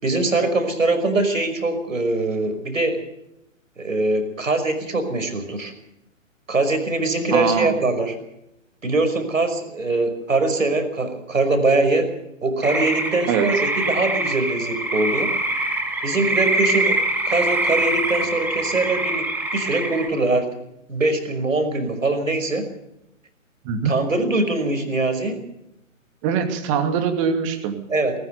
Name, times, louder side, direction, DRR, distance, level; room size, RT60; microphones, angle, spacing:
voice 1, 0.0-3.0 3.8-5.7 6.5-8.1 8.8-12.1 12.4-15.3 16.0-17.0 17.2-20.5 20.9-22.7 23.8-25.4 27.9-28.1, right 2 dB, 75° right, 8 dB, 5.7 m, -22 dB
voice 2, 7.3-7.8 13.3-13.5 23.6-23.9 26.2-27.8, right 6 dB, 25° right, 7 dB, 2.6 m, -22 dB
sound 1, 12.6-20.1, right 2 dB, 5° right, 2.0 m, -24 dB
20.0 x 19.0 x 6.8 m, 0.84 s
figure-of-eight pair, 135°, 40 cm